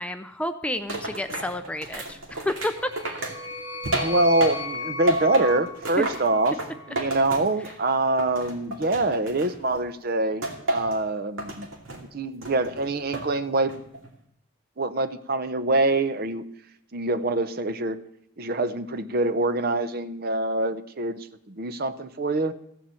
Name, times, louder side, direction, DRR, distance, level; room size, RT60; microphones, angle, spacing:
voice 1, 0.0-2.9 3.9-4.1, left 1 dB, 5° left, 8 dB, 0.5 m, -30 dB
sound 1, 0.9-4.8 5.1-7.9 8.2-9.8 10.4-11.0 11.4-12.0 12.4-13.3 13.7-14.1, right 1 dB, 85° right, 2.4 m, -31 dB
sound 2, 2.6-7.0, left 2 dB, 25° left, 3.1 m, -36 dB
voice 2, 4.0-6.6 6.9-11.7 12.1-13.7 14.8-16.4 16.9-18.0 18.4-22.5, right 2 dB, 50° right, 12 dB, 0.7 m, -25 dB
14.5 x 7.3 x 7.7 m, 0.72 s
head